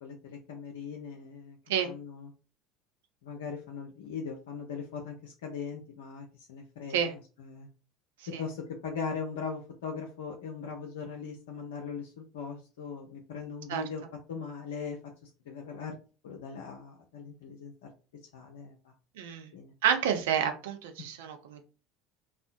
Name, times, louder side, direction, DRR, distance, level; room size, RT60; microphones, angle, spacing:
voice 1, 0.0-1.6 1.8-2.3 3.2-7.7 8.4-14.0 14.3-15.0 15.5-16.0 16.2-17.7 18.3-18.9 19.5-19.7, left 5 dB, 70° left, 1 dB, 0.4 m, -40 dB
voice 2, 19.2-19.5 19.8-21.7, right 8 dB, 65° right, 6 dB, 0.4 m, -29 dB
2.6 x 2.1 x 2.5 m, 0.34 s
figure-of-eight pair, 65°, 0 cm